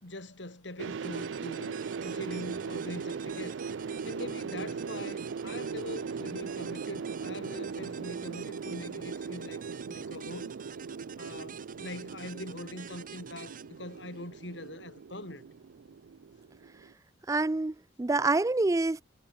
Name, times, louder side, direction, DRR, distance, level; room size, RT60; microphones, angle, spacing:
voice 1, 0.0-3.6 4.0-10.5 11.2-15.4, left 1 dB, 75° left, 4.1 m, -43 dB
sound 1, 0.8-16.9, right 5 dB, 80° right, 0.4 m, -39 dB
sound 2, 1.0-14.7, right 7 dB, 45° right, 2.4 m, -49 dB
voice 2, 17.3-19.0, right 3 dB, 15° right, 0.3 m, -27 dB
head